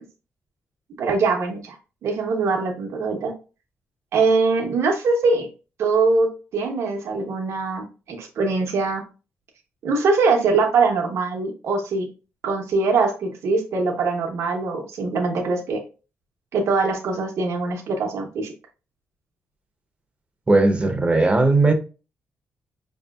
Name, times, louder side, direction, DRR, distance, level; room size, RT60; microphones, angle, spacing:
voice 1, 1.0-1.8 2.0-3.3 4.1-5.5 5.8-9.0 9.8-12.1 12.4-15.8 16.5-18.5, right 4 dB, 70° right, 0.8 m, -22 dB
voice 2, 20.5-21.7, right 2 dB, 25° right, 0.7 m, -17 dB
4.8 x 2.7 x 2.3 m
cardioid pair, 90°, 5 cm